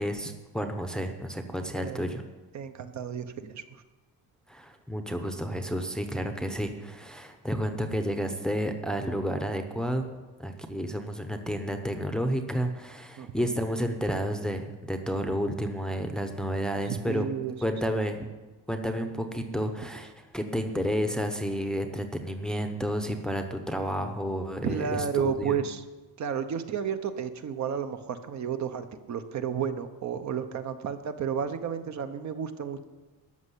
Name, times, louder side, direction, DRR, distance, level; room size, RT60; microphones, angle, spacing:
voice 1, 0.0-2.2 4.5-10.1 10.4-17.3 17.6-18.3 18.7-25.6, equal, ahead, 5 dB, 0.8 m, -31 dB
voice 2, 1.7-2.1 2.5-3.8 13.2-13.5 16.8-17.5 24.6-25.8 26.2-32.8, right 7 dB, 45° right, 9 dB, 0.9 m, -32 dB
13.5 x 6.7 x 9.9 m, 1.2 s
cardioid pair, 165°, 39 cm